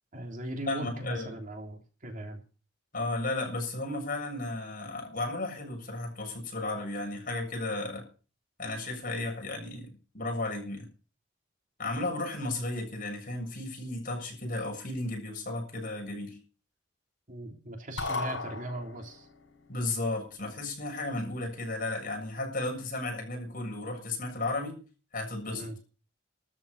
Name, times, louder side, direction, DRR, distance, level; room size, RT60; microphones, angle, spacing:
voice 1, 0.1-2.4 17.3-19.3 25.5-25.8, right 1 dB, 45° right, 3.4 m, -39 dB
voice 2, 0.7-1.4 2.9-8.1 8.6-10.9 11.8-16.4 19.7-24.8 25.1-25.7, left 2 dB, 45° left, 7.3 m, -34 dB
sound 1, 18.0-19.3, left 3 dB, 80° left, 6.4 m, -35 dB
13.0 x 8.4 x 8.6 m
head